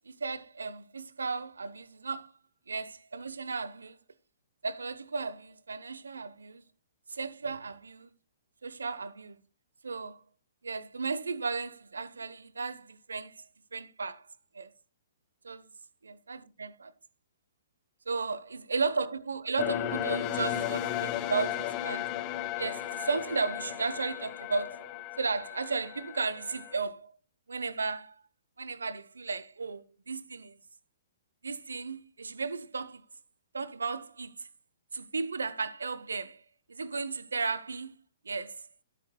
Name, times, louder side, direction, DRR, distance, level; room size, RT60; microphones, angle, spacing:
voice 1, 0.0-2.3 2.7-4.0 4.6-6.6 7.1-8.1 8.6-9.4 9.8-10.2 10.6-13.4 13.7-14.3 14.5-14.7 15.4-15.7 16.0-16.9 18.1-22.1 22.6-27.1 27.5-28.2 28.6-30.6 31.4-33.0 33.5-34.5 34.9-36.4 36.7-38.0 38.2-38.7, right 4 dB, 80° right, 0.8 m, -35 dB
sound 1, 19.6-26.8, left 11 dB, 35° left, 1.0 m, -35 dB
12.0 x 9.9 x 2.2 m
figure-of-eight pair, 120°, 0 cm